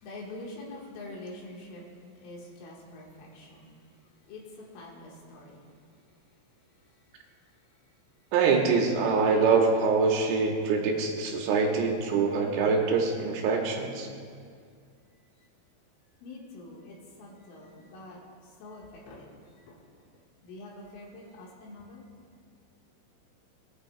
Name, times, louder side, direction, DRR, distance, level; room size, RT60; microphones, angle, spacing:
voice 1, 0.0-1.8 2.2-3.7 4.3-5.6 16.2-18.2 18.6-19.3 19.7-19.8 20.4-22.1, left 2 dB, 75° left, -3 dB, 4.0 m, -45 dB
voice 2, 8.3-14.1, right 4 dB, 80° right, 0 dB, 3.5 m, -24 dB
21.0 x 9.6 x 2.3 m, 2.1 s
omnidirectional pair, 6.0 m